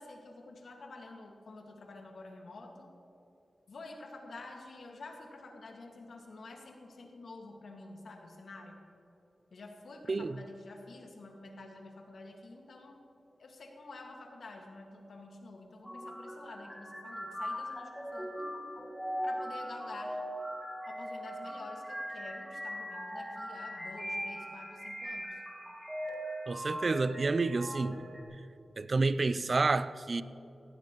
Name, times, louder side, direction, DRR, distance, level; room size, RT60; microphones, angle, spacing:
voice 1, 0.0-2.9 3.7-8.8 9.5-13.0 13.4-18.5 19.2-20.2 20.8-25.4, left 2 dB, 80° left, 1.8 m, -49 dB
sound 1, 15.8-28.2, equal, 10° right, 1.7 m, -40 dB
voice 2, 26.5-28.0 28.8-30.2, right 3 dB, 55° right, 0.4 m, -29 dB
18.0 x 15.5 x 3.0 m
cardioid pair, 60°, 0 cm